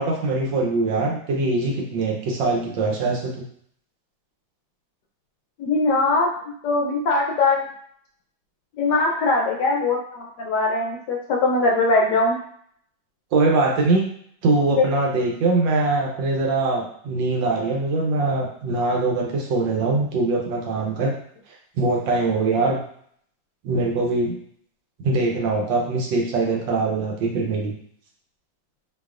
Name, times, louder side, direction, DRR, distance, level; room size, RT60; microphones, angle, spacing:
voice 1, 0.0-3.3 13.3-14.1 14.4-21.1 21.8-22.8 23.6-24.3 25.0-27.7, right 3 dB, 70° right, -1 dB, 1.4 m, -22 dB
voice 2, 5.6-7.7 8.8-12.4 14.7-14.9, left 3 dB, 75° left, -1 dB, 1.0 m, -21 dB
4.1 x 2.9 x 2.4 m, 0.63 s
omnidirectional pair, 2.2 m